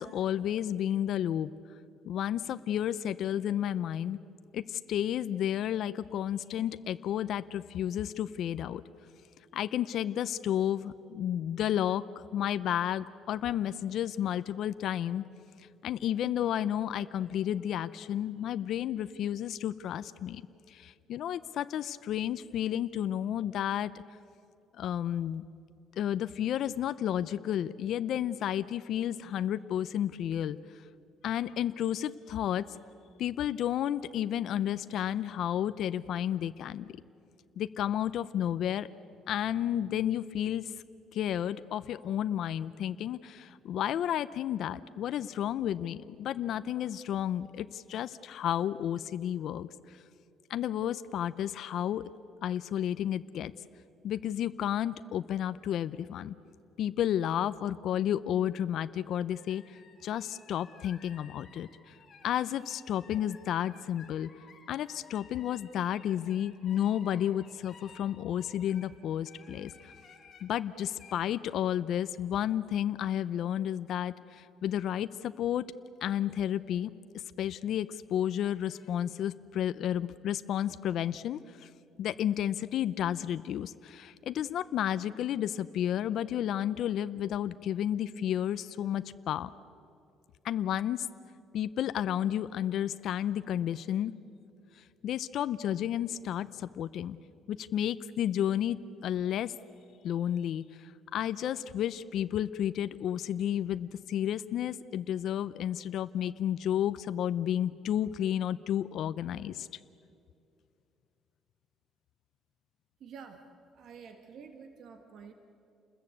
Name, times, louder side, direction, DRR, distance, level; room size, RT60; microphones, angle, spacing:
voice 1, 0.0-1.5 2.1-4.2 4.5-8.8 9.5-12.0 12.3-15.2 15.8-20.4 20.7-23.9 24.8-25.4 26.0-30.6 31.2-32.7 33.2-36.8 37.6-38.9 39.3-40.7 41.1-50.0 50.5-52.1 52.4-53.5 54.0-56.3 56.8-59.8 60.0-61.9 62.2-64.3 64.7-69.7 70.4-75.7 76.0-81.7 82.0-89.5 90.4-91.1 91.5-94.1 94.8-97.2 97.5-99.5 100.0-109.7, left 10 dB, 60° left, 13 dB, 0.6 m, -32 dB
sound 1, 59.3-68.9 69.3-70.5 70.9-71.1, left 5 dB, 35° left, 3.8 m, -56 dB
voice 2, 113.0-113.5 113.7-115.3, right 6 dB, 55° right, 6 dB, 1.7 m, -49 dB
29.0 x 21.0 x 8.5 m, 2.5 s
cardioid pair, 140°, 0 cm